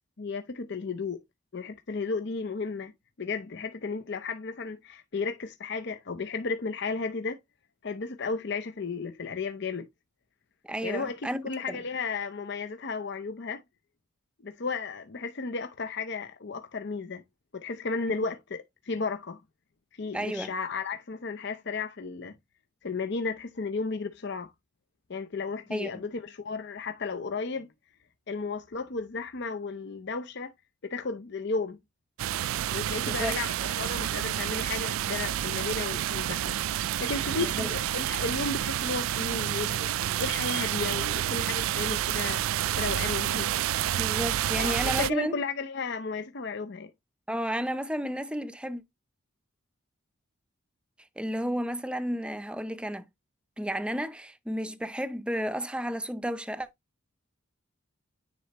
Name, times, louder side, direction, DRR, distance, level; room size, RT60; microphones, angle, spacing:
voice 1, 0.2-1.2 1.5-2.9 3.2-7.4 7.8-9.9 10.8-13.6 14.4-17.2 17.5-19.4 20.0-22.3 22.8-24.5 25.1-27.7 28.3-30.5 30.8-31.8 32.7-42.4 42.8-43.5 44.6-46.9, left 4 dB, 55° left, 0.6 m, -34 dB
voice 2, 10.6-11.8 20.1-20.5 25.7-25.9 33.0-33.3 37.4-37.7 44.0-45.4 47.3-48.8 51.2-53.0 53.6-56.7, equal, 5° right, 0.6 m, -32 dB
sound 1, 32.2-45.1, right 12 dB, 90° right, 0.3 m, -29 dB
9.6 x 4.3 x 2.9 m
head